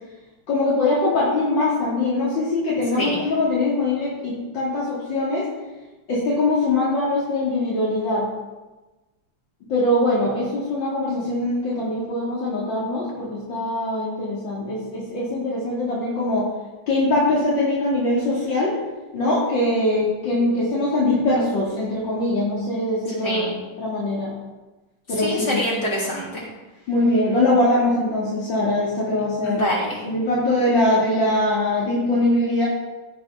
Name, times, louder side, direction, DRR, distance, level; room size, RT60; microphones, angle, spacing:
voice 1, 0.5-5.5 6.1-8.2 9.7-16.5 16.9-18.8 19.1-23.5 23.8-24.3 25.1-25.6 26.9-29.7 30.0-32.7, left 2 dB, 70° left, -7 dB, 3.1 m, -22 dB
voice 2, 23.2-23.6 25.1-26.4 29.4-30.0, equal, 55° left, -5 dB, 4.0 m, -25 dB
16.5 x 6.1 x 5.5 m, 1.1 s
omnidirectional pair, 2.1 m